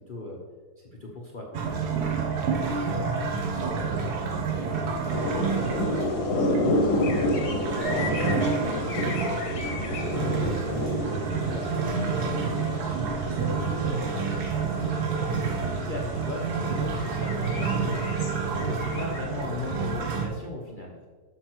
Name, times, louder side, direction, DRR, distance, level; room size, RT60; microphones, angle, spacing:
voice 1, 0.1-0.4 0.8-1.6 9.0-10.0 15.4-18.3 18.6-21.1, left 2 dB, 35° left, -2 dB, 0.9 m, -37 dB
sound 1, 1.5-20.3, right 5 dB, 70° right, 1.6 m, -29 dB
voice 2, 2.5-5.1 5.7-9.0 9.8-10.2 10.6-14.5, equal, 45° right, -5 dB, 3.2 m, -38 dB
sound 2, 5.1-15.6 16.0-16.2 16.6-19.2, left 1 dB, 75° left, 1.6 m, -30 dB
8.8 x 6.4 x 4.5 m, 1.5 s
omnidirectional pair, 1.7 m